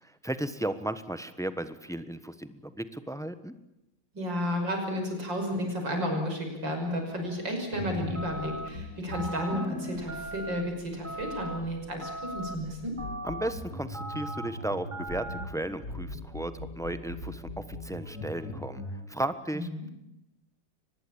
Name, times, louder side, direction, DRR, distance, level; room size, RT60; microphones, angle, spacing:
voice 1, 0.0-3.5 13.2-19.9, right 1 dB, ahead, 12 dB, 0.9 m, -35 dB
voice 2, 4.1-12.9 19.5-19.8, equal, 90° right, 3 dB, 6.7 m, -32 dB
sound 1, 7.7-19.0, left 2 dB, 60° left, 3.4 m, -41 dB
sound 2, 8.1-8.7 9.1-9.6 10.1-10.6 11.0-11.6 12.0-12.5 13.0-13.5 13.9-14.5 14.9-15.4, right 2 dB, 25° right, 2.1 m, -38 dB
23.5 x 20.5 x 8.8 m, 0.90 s
omnidirectional pair, 1.9 m